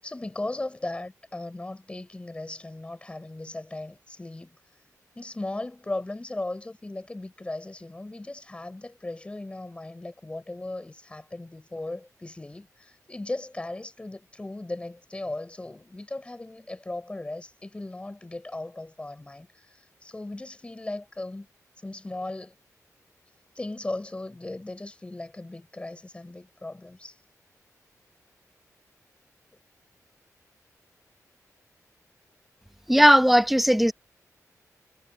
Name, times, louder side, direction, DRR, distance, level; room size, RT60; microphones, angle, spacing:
voice 1, 0.0-4.5 5.1-21.5 21.8-22.5 23.5-27.2, left 2 dB, 20° left, 6.4 m, -37 dB
voice 2, 32.9-33.9, equal, ahead, 1.1 m, -17 dB
wide cardioid pair, 110°, 6 cm